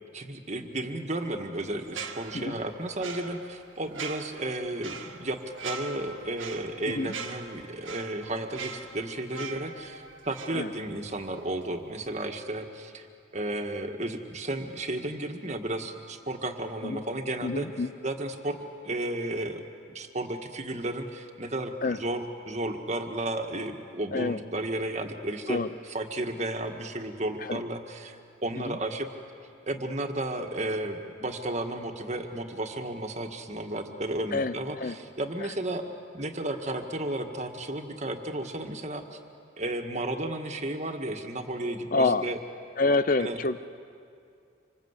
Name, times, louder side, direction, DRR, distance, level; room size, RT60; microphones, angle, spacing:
voice 1, 0.1-13.1 13.3-17.7 18.0-18.6 18.8-25.6 25.9-29.1 29.7-35.8 36.1-39.2 39.6-42.4 43.2-43.4, right 1 dB, 35° right, 4 dB, 1.7 m, -33 dB
sound 1, 1.8-11.2 11.5-11.7, right 5 dB, 90° right, 2.0 m, -41 dB
voice 2, 6.9-7.2 10.5-10.7 16.8-17.0 17.4-17.9 21.8-22.0 24.1-24.4 25.5-25.7 27.4-27.6 28.6-28.8 34.3-35.0 41.9-42.3 42.8-43.6, left 3 dB, 45° left, 13 dB, 0.6 m, -27 dB
26.5 x 26.0 x 8.2 m, 2.4 s
head